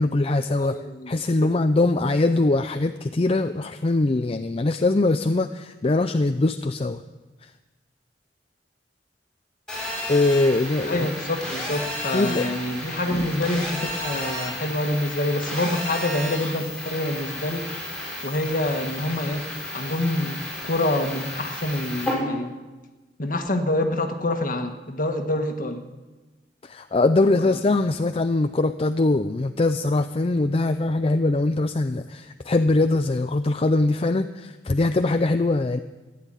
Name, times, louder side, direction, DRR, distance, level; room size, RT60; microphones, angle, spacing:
voice 1, 0.0-0.8 1.1-7.0 7.4-7.5 10.1-11.0 12.1-12.5 26.6-35.8, left 2 dB, 35° left, 9 dB, 0.5 m, -22 dB
voice 2, 0.6-1.1 1.4-1.5 10.9-17.7 18.2-19.5 19.7-22.5 23.2-25.8 27.4-27.6, left 1 dB, 50° left, 5 dB, 1.6 m, -26 dB
Telephone, 9.7-22.1, left 1 dB, 5° left, 6.0 m, -33 dB
15.5 x 10.0 x 9.1 m, 1.2 s
head